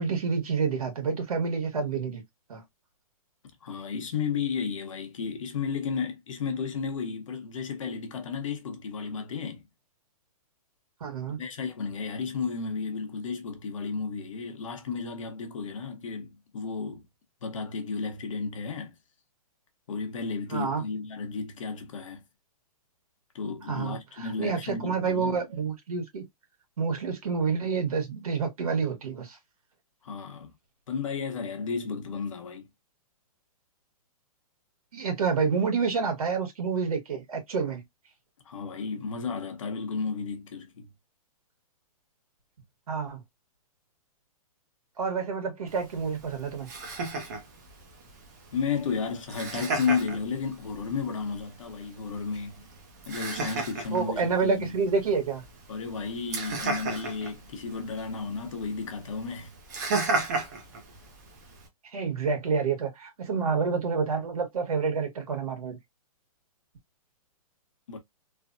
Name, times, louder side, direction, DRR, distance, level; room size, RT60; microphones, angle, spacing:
voice 1, 0.0-2.2 2.5-2.6 11.0-11.4 20.5-20.8 23.7-26.3 26.8-29.4 34.9-37.8 42.9-43.2 45.0-46.7 53.9-55.4 61.9-65.8, right 5 dB, 75° right, 1.4 m, -28 dB
voice 2, 3.6-9.6 11.4-17.0 17.4-19.0 19.9-22.2 23.3-25.4 30.0-30.5 30.9-32.7 38.4-40.9 48.5-52.7 53.1-54.8 55.7-59.5 67.9-68.0, left 5 dB, 55° left, 0.9 m, -33 dB
Laughter, 45.7-61.7, right 3 dB, 30° right, 0.6 m, -36 dB
3.2 x 2.1 x 2.5 m
hypercardioid pair, 180°, 19 cm